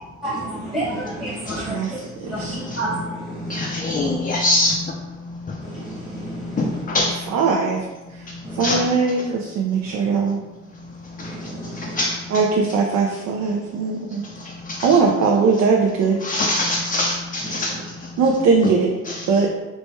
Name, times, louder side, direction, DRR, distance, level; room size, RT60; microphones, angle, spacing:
voice 1, 0.2-1.8 2.2-3.8 5.6-6.8 8.4-8.6 9.8-10.2 11.2-12.0 17.5-17.8, right 1 dB, 15° right, -6 dB, 1.0 m, -31 dB
voice 2, 1.6-2.6 6.9-7.8 8.1-8.3 8.6-10.4 12.3-14.2 14.8-16.2 18.2-18.9 19.3-19.5, right 4 dB, 65° right, 1 dB, 0.5 m, -20 dB
voice 3, 3.5-4.8 6.6-7.1 8.6-8.8 11.2-11.3 12.0-12.1 16.2-17.7 19.1-19.2, left 2 dB, 30° left, -1 dB, 0.4 m, -22 dB
3.3 x 2.2 x 4.2 m, 1.1 s
cardioid pair, 90°, 30 cm